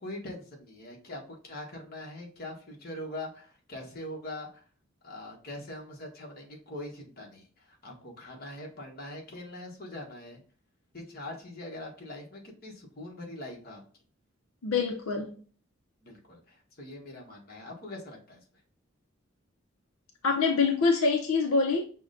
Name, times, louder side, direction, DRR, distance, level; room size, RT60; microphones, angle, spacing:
voice 1, 0.0-4.6 5.0-10.4 10.9-13.8 16.0-18.4, left 1 dB, 45° left, 1.1 m, -42 dB
voice 2, 14.6-15.4 20.2-21.9, left 4 dB, 85° left, 0.5 m, -25 dB
5.7 x 2.2 x 2.5 m
head